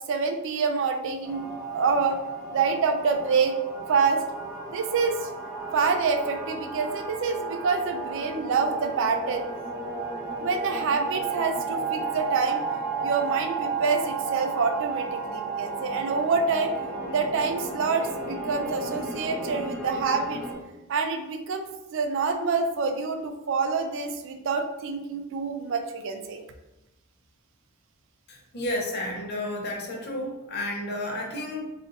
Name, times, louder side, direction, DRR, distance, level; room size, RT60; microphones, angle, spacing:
voice 1, 0.1-2.2 2.5-3.5 3.9-4.2 4.7-5.3 5.7-9.4 10.4-12.6 13.0-16.7 17.1-20.4 20.9-26.4, right 5 dB, 60° right, 6 dB, 0.3 m, -27 dB
sound 1, 1.2-20.5, right 4 dB, 5° left, 0.8 m, -33 dB
voice 2, 28.3-31.7, left 1 dB, 50° left, -1 dB, 0.7 m, -32 dB
2.6 x 2.4 x 3.8 m, 0.98 s
head